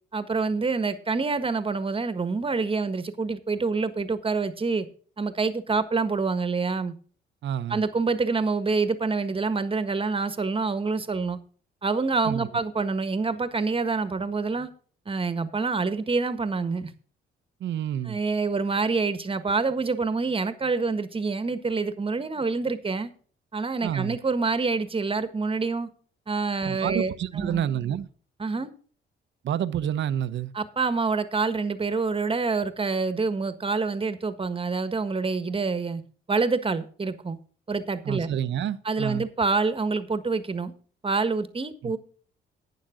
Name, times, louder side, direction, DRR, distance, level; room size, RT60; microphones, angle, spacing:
voice 1, 0.1-4.9 5.2-6.9 7.7-11.4 11.8-14.7 15.0-16.9 18.1-23.1 23.5-25.9 26.3-27.7 28.4-28.7 30.5-36.0 36.3-37.4 37.7-38.3 38.8-40.7 41.0-42.0, right 4 dB, 25° right, 1.5 m, -26 dB
voice 2, 7.4-7.8 12.2-12.5 17.6-18.2 23.8-24.2 26.6-28.1 29.4-30.5 38.0-39.3 41.8-41.9, right 10 dB, 65° right, 0.9 m, -29 dB
11.5 x 9.5 x 3.8 m
cardioid pair, 90°, 20 cm